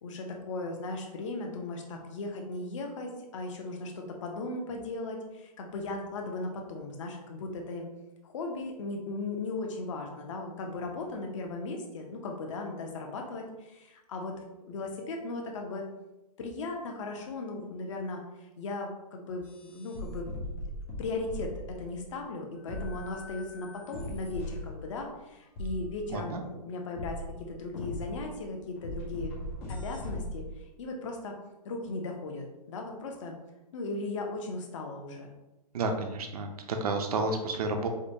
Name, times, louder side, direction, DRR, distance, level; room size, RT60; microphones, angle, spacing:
voice 1, 0.0-7.9 8.2-14.3 14.6-15.8 16.4-20.3 21.0-29.3 29.7-30.4 30.8-31.4 31.6-33.4 33.7-35.3, left 3 dB, 50° left, 2 dB, 0.7 m, -37 dB
sound 1, 19.4-22.1 22.7-25.0 25.5-26.3 27.0-30.7, left 1 dB, 10° left, 0.3 m, -39 dB
voice 2, 35.7-37.9, right 3 dB, 65° right, 4 dB, 0.6 m, -31 dB
4.9 x 2.2 x 2.7 m, 0.98 s
hypercardioid pair, 160°, 21 cm